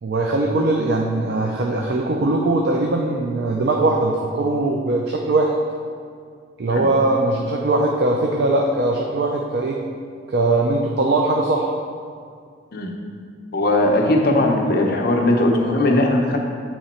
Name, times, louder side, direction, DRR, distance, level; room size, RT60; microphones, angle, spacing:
voice 1, 0.0-5.5 6.6-9.8 10.3-11.7, right 2 dB, 60° right, 0 dB, 0.4 m, -20 dB
voice 2, 13.5-16.4, left 1 dB, 55° left, 1 dB, 0.7 m, -18 dB
8.7 x 3.0 x 4.2 m, 2.2 s
head